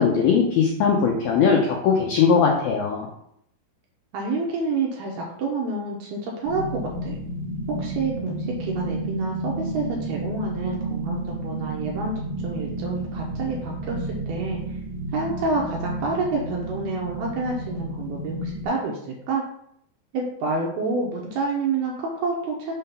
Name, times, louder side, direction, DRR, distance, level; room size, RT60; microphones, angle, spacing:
voice 1, 0.0-3.1, left 6 dB, 80° left, -1 dB, 2.1 m, -20 dB
voice 2, 4.1-7.2 7.7-14.8 15.1-19.4 20.1-22.7, right 3 dB, 75° right, -2 dB, 2.4 m, -28 dB
sound 1, 6.4-18.6, right 1 dB, 90° right, 1.3 m, -31 dB
6.6 x 3.8 x 5.7 m, 0.72 s
omnidirectional pair, 5.4 m